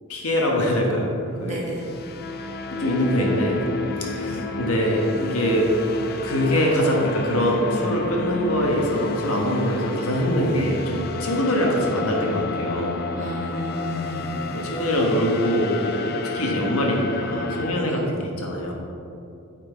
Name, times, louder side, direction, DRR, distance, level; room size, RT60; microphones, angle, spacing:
voice 1, 0.1-1.1 1.4-1.6 2.7-3.6 4.0-5.7 6.2-13.0 14.5-18.7, equal, 80° left, -1 dB, 1.3 m, -23 dB
voice 2, 1.4-1.8 13.1-14.3 17.9-18.0, equal, 30° right, -4 dB, 1.5 m, -32 dB
sound 1, 1.5-17.7, left 3 dB, 45° left, 0.4 m, -31 dB
8.8 x 4.4 x 4.5 m, 2.6 s
head